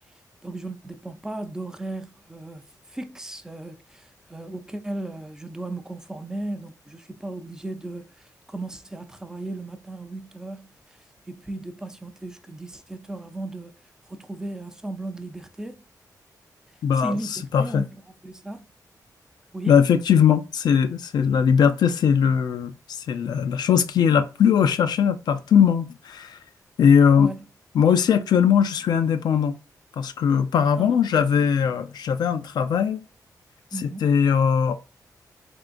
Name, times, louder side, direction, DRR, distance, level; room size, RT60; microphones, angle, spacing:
voice 1, 0.4-13.7 14.1-15.8 17.0-18.0 18.2-18.6 19.5-19.8 27.2-27.4 30.8-31.0 33.7-34.1, right 2 dB, 10° right, 0.4 m, -36 dB
voice 2, 16.8-17.2 17.5-17.8 19.7-26.4 26.8-27.3 27.7-29.5 30.0-33.0 33.8-34.8, left 7 dB, 85° left, 0.4 m, -20 dB
3.7 x 3.6 x 2.5 m
wide cardioid pair, 175°, 7 cm